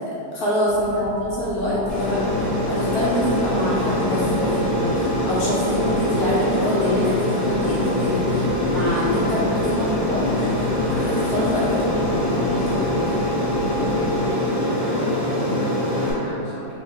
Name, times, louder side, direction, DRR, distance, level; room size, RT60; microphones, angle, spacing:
voice 1, 0.3-10.7 11.0-12.7, left 1 dB, 70° left, -7 dB, 1.0 m, -25 dB
sound 1, 0.6-14.3, right 2 dB, 80° right, 1.3 m, -36 dB
Aircraft, 1.9-16.1, left 1 dB, 50° left, 1.0 m, -23 dB
voice 2, 8.6-9.0 10.7-11.4 13.7-16.7, equal, 30° right, -14 dB, 0.7 m, -35 dB
3.4 x 2.9 x 3.1 m, 2.9 s
omnidirectional pair, 2.0 m